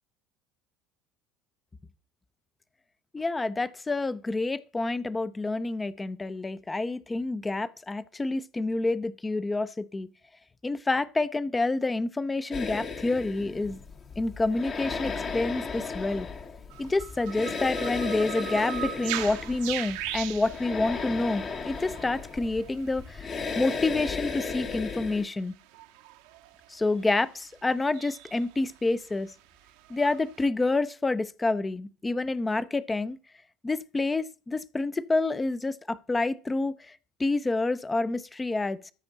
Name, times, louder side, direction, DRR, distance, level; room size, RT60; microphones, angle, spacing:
voice 1, 3.1-10.1 10.6-13.8 14.2-16.3 16.8-25.5 26.7-29.3 29.9-33.2 33.6-38.8, left 2 dB, 15° left, 0.6 m, -28 dB
sound 1, 12.5-25.2, left 5 dB, 35° left, 1.2 m, -35 dB
sound 2, 16.7-30.5, right 13 dB, 65° right, 0.8 m, -41 dB
13.5 x 5.2 x 3.9 m
figure-of-eight pair, 65°, 0 cm